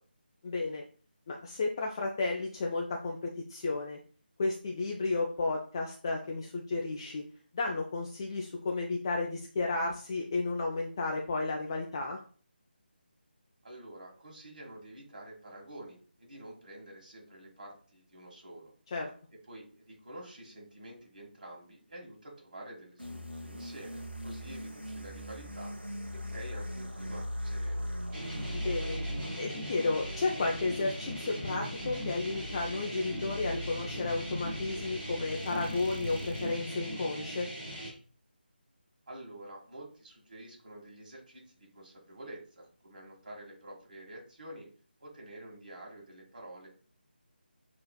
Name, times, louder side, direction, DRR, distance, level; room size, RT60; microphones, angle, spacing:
voice 1, 0.4-0.8 1.3-3.2 3.5-4.0 4.4-7.2 7.5-12.2 18.9-19.1 28.5-29.0 29.4-37.5, left 3 dB, 25° left, 0 dB, 0.4 m, -33 dB
voice 2, 13.6-18.7 19.5-25.7 26.1-27.9 39.1-44.7 45.0-46.7, right 1 dB, 50° right, -1 dB, 1.7 m, -48 dB
sound 1, 23.0-36.6, equal, 90° right, 0.8 m, -40 dB
sound 2, 28.1-37.9, equal, 10° right, 1.1 m, -40 dB
6.5 x 2.9 x 2.3 m, 0.42 s
figure-of-eight pair, 155°, 6 cm